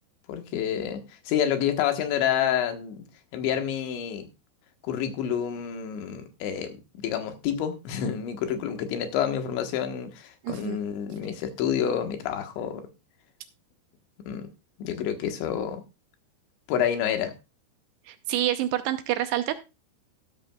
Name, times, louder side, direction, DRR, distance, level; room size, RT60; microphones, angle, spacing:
voice 1, 0.3-3.0 3.3-4.3 4.8-12.9 14.3-14.5 14.8-15.8 16.7-17.3, left 9 dB, 80° left, 6 dB, 3.7 m, -28 dB
voice 2, 10.4-10.8 18.1-19.5, right 13 dB, 80° right, 10 dB, 2.6 m, -27 dB
13.0 x 13.0 x 2.3 m, 0.27 s
omnidirectional pair, 5.1 m